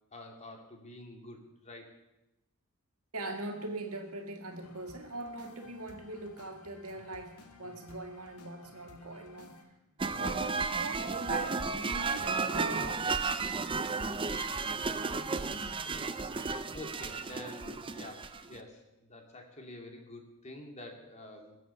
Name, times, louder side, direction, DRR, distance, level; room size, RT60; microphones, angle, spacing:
voice 1, 0.1-2.0 13.9-14.2 15.4-21.6, left 1 dB, 30° left, 3 dB, 2.3 m, -48 dB
voice 2, 3.1-9.7 10.1-13.1 13.7-14.3 15.4-15.9, right 2 dB, 75° right, 4 dB, 2.1 m, -42 dB
sound 1, 4.5-9.6, left 3 dB, 85° left, 1.8 m, -56 dB
sound 2, 10.0-18.6, right 4 dB, 25° right, 0.6 m, -33 dB
22.0 x 7.7 x 6.9 m, 0.95 s
head